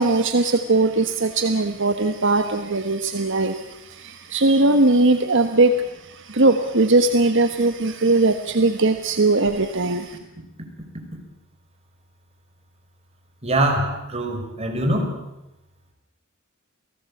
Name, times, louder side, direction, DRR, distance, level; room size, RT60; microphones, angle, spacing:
voice 1, 0.0-10.2, right 2 dB, 60° right, 7 dB, 1.5 m, -20 dB
voice 2, 13.4-15.1, right 1 dB, 30° right, 2 dB, 5.5 m, -23 dB
28.5 x 18.5 x 8.6 m, 0.92 s
head